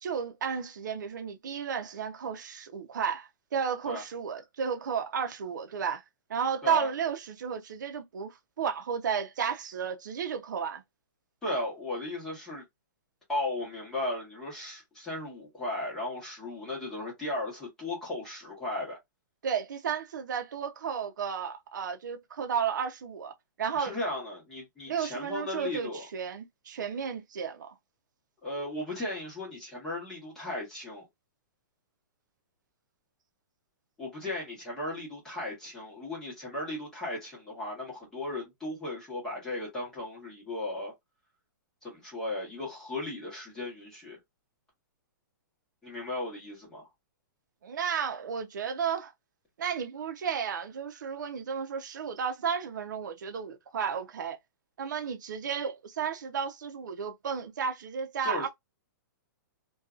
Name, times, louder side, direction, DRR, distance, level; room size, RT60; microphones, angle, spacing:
voice 1, 0.0-6.0 6.3-10.8 19.4-24.0 24.9-27.7 47.6-49.1 49.6-54.4 54.8-58.5, right 7 dB, 65° right, 0.6 m, -33 dB
voice 2, 11.4-12.6 13.3-19.0 23.7-26.1 28.4-31.0 34.0-40.9 41.8-44.2 45.8-46.9 58.2-58.5, left 1 dB, 5° left, 1.1 m, -36 dB
2.6 x 2.3 x 2.4 m
hypercardioid pair, 175°, 11 cm